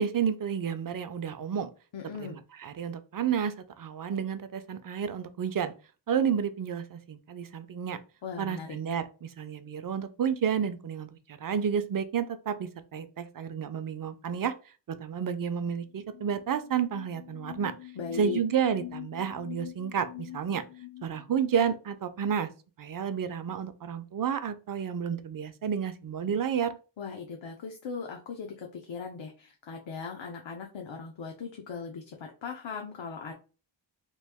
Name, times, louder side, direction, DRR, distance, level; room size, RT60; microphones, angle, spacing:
voice 1, 0.0-1.7 2.2-5.7 6.1-8.0 8.4-14.5 14.9-17.7 18.2-20.6 21.0-22.5 22.8-26.8, right 7 dB, 50° right, 11 dB, 0.5 m, -31 dB
voice 2, 1.9-2.4 8.2-8.8 18.0-18.4 27.0-33.3, left 6 dB, 80° left, 1 dB, 0.7 m, -38 dB
sound 1, 16.0-21.7, left 16 dB, 35° left, 0.4 m, -45 dB
3.1 x 2.5 x 3.4 m, 0.34 s
wide cardioid pair, 80°, 45 cm